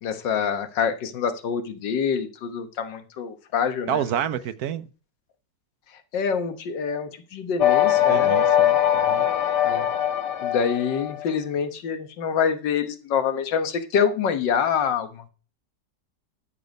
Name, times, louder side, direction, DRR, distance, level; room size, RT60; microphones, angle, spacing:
voice 1, 0.0-4.0 6.1-8.3 9.6-9.9 10.4-15.3, left 7 dB, 85° left, 1.8 m, -26 dB
voice 2, 3.9-4.8 8.1-9.2, right 9 dB, 65° right, 1.0 m, -29 dB
sound 1, 7.6-11.3, left 11 dB, 70° left, 1.6 m, -21 dB
12.0 x 6.9 x 5.2 m
omnidirectional pair, 1.9 m